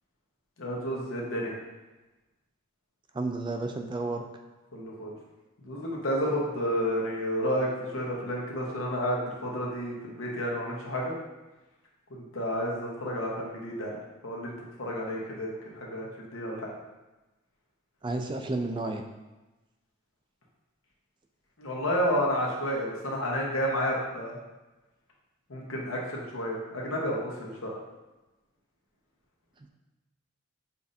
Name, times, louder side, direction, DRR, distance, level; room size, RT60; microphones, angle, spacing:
voice 1, 0.6-1.5 4.7-5.2 5.6-11.1 12.1-14.0 14.2-14.5 14.8-16.7 21.6-24.4 25.5-27.7, equal, 80° left, -2 dB, 1.0 m, -31 dB
voice 2, 3.1-4.2 18.0-19.0, right 2 dB, 25° right, 4 dB, 0.3 m, -31 dB
6.8 x 2.6 x 2.6 m, 1.1 s
head